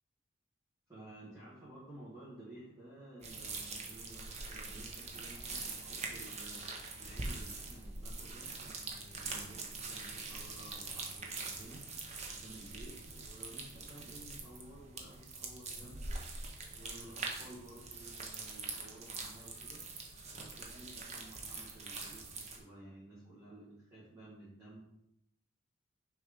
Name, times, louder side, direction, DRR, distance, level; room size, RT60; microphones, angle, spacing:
voice 1, 0.9-6.6 6.9-11.9 12.3-16.2 16.7-19.9 20.3-24.8, right 1 dB, 15° right, -11 dB, 2.1 m, -54 dB
sound 1, 3.2-22.6, right 3 dB, 35° right, 0.9 m, -44 dB
6.2 x 3.3 x 5.3 m, 0.81 s
head